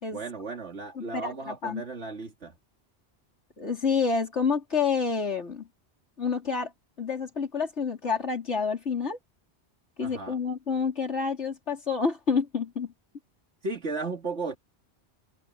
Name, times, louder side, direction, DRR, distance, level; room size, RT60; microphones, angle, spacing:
voice 1, 0.1-2.6 10.0-10.4 13.6-14.6, right 3 dB, 85° right, 2.6 m, -35 dB
voice 2, 1.0-1.8 3.6-5.7 6.2-6.7 7.0-9.2 10.0-12.9, left 5 dB, 90° left, 4.0 m, -28 dB
omnidirectional pair, 1.1 m